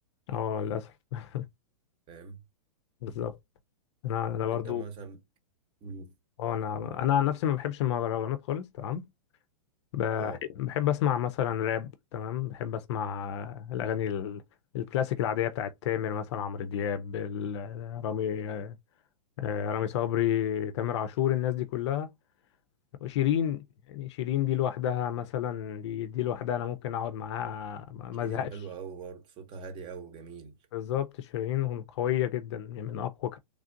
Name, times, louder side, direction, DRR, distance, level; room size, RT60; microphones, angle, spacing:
voice 1, 0.3-1.4 3.0-3.4 4.0-4.8 6.4-9.1 9.9-14.4 14.7-18.8 19.4-22.1 23.0-28.5 30.7-33.4, left 10 dB, 50° left, 0.5 m, -30 dB
voice 2, 2.1-2.4 4.5-5.2 5.8-6.1 10.1-10.4 28.2-30.6, right 5 dB, 25° right, 0.9 m, -42 dB
3.3 x 2.5 x 2.5 m
hypercardioid pair, 140°, 19 cm